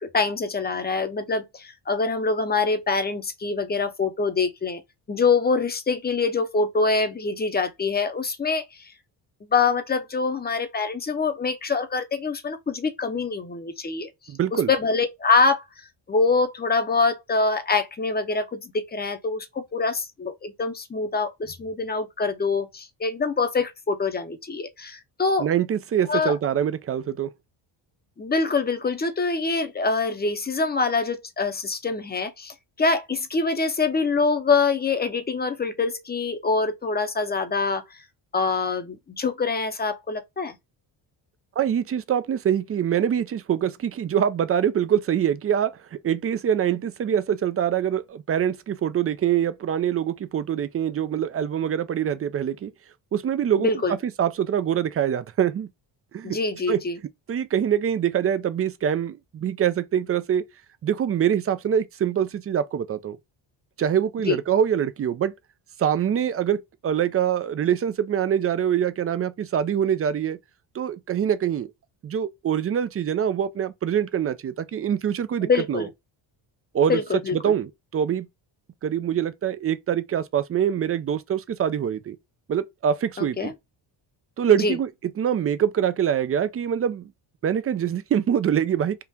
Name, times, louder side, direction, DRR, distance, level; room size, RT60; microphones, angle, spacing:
voice 1, 0.0-4.8 5.1-8.9 9.4-14.1 14.5-15.6 16.1-25.5 26.1-26.3 28.2-37.8 38.3-40.5 53.6-54.0 56.2-57.0 64.2-64.4 75.4-75.9 76.9-77.5 83.2-83.5 84.6-84.8, left 4 dB, 20° left, 0.7 m, -25 dB
voice 2, 14.3-14.7 25.4-27.3 41.6-52.7 53.1-53.7 54.2-55.7 56.1-56.4 56.7-56.8 57.3-60.4 60.8-63.2 63.8-65.3 65.8-70.4 70.7-71.7 72.0-75.9 76.7-77.0 77.3-78.3 78.8-82.2 82.5-83.5 84.4-84.9 85.2-87.1 87.4-89.0, right 9 dB, 30° right, 0.4 m, -24 dB
3.7 x 2.4 x 2.7 m
cardioid pair, 90°, 49 cm